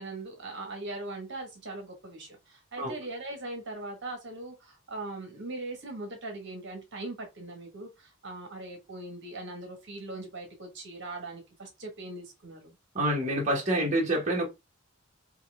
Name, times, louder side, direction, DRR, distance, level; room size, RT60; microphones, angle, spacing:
voice 1, 0.0-12.8, right 2 dB, 55° right, 1.3 m, -40 dB
voice 2, 12.9-14.4, right 1 dB, 35° right, 1.4 m, -27 dB
5.5 x 2.4 x 3.4 m
head